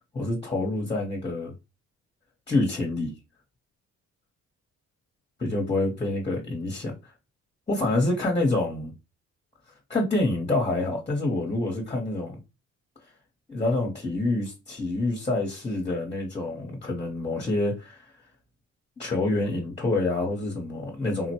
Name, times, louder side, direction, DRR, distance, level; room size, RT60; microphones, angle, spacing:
voice 1, 0.1-1.5 2.5-3.1 5.4-6.9 7.7-8.9 9.9-12.4 13.5-18.1 19.0-21.3, left 2 dB, 20° left, 0.9 m, -27 dB
3.6 x 2.1 x 2.9 m
cardioid pair, 90°, 30 cm